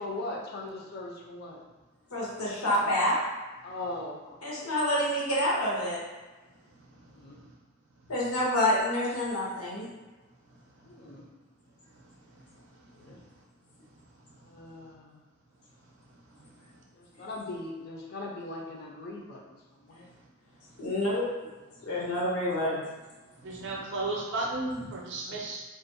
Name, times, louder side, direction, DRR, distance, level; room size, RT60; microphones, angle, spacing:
voice 1, 0.0-1.6 2.7-2.8 3.6-4.7 7.1-7.4 10.9-11.2 12.9-13.2 14.4-15.2 16.9-20.1, left 2 dB, 45° left, -1 dB, 0.4 m, -40 dB
voice 2, 2.1-3.1 4.4-6.0 8.1-9.8 20.8-21.1 21.8-22.8, left 1 dB, 85° left, -5 dB, 0.8 m, -27 dB
voice 3, 23.4-25.6, right 2 dB, 55° right, -2 dB, 0.4 m, -33 dB
2.4 x 2.0 x 2.6 m, 1.2 s
head